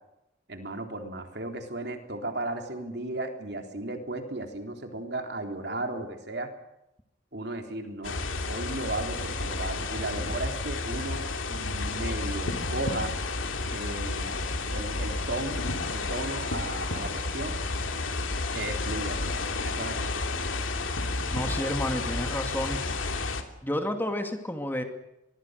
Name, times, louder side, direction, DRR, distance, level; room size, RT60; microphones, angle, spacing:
voice 1, 0.5-6.5 7.3-8.2 8.5-13.1 13.7-14.4 14.7-15.6 15.9-17.6 18.5-19.4 19.6-20.1, right 2 dB, 55° right, 5 dB, 3.7 m, -35 dB
sound 1, 8.0-23.4, left 3 dB, 90° left, 3.0 m, -31 dB
voice 2, 21.3-22.8 23.6-24.8, left 1 dB, 10° left, 5 dB, 2.4 m, -30 dB
25.0 x 22.5 x 6.7 m, 0.90 s
head